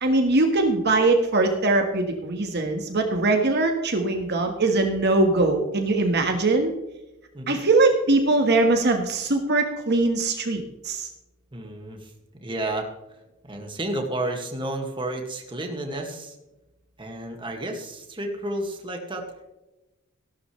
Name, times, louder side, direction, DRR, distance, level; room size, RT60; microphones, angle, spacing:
voice 1, 0.0-6.7 7.5-11.1, right 2 dB, 50° right, 4 dB, 1.5 m, -21 dB
voice 2, 11.5-12.1 12.4-12.9 13.5-16.3 17.0-19.3, right 1 dB, 25° right, 3 dB, 2.0 m, -31 dB
16.0 x 12.0 x 3.3 m, 0.99 s
head